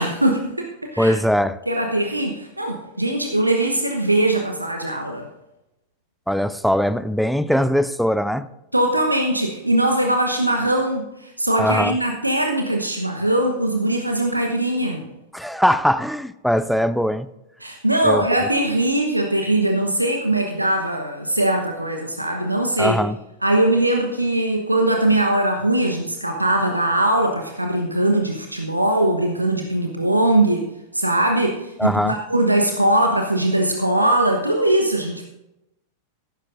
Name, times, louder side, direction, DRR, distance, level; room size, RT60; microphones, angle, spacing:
voice 1, 0.0-1.1 1.7-5.3 8.7-15.1 17.6-23.0 23.4-35.2, right 1 dB, 85° right, 3 dB, 1.0 m, -21 dB
voice 2, 1.0-1.6 6.3-8.5 11.6-12.0 15.3-17.3 18.0-18.3 22.8-23.2 31.8-32.2, equal, ahead, 14 dB, 0.5 m, -20 dB
15.0 x 12.0 x 2.6 m, 0.93 s
figure-of-eight pair, 90°, 0 cm